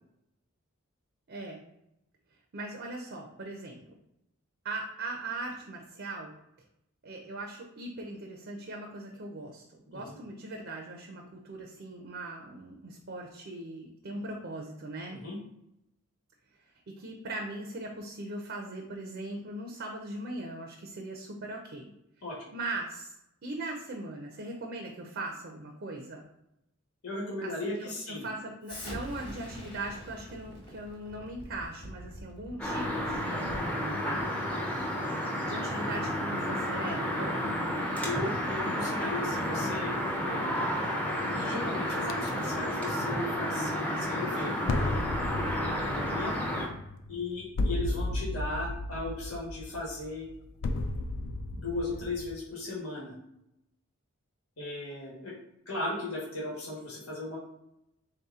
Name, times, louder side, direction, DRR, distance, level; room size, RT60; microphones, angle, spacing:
voice 1, 1.3-1.6 2.5-3.8 4.6-6.3 7.0-15.2 16.9-21.9 22.5-23.1 23.4-26.2 27.4-34.0 35.4-37.6, right 2 dB, 50° right, 1 dB, 0.5 m, -40 dB
voice 2, 27.0-28.2 38.0-39.9 40.2-40.6 41.3-45.0 45.6-46.3 47.1-50.3 51.5-53.2 54.6-55.3 55.7-57.4, left 2 dB, 75° left, -4 dB, 1.2 m, -36 dB
Explosion, 28.6-33.8, equal, 25° left, 1.1 m, -44 dB
sound 1, 32.6-46.7, equal, 5° left, 0.5 m, -31 dB
sound 2, 42.1-42.3 44.7-52.4, left 2 dB, 55° left, 0.3 m, -34 dB
3.5 x 2.8 x 3.5 m, 0.84 s
head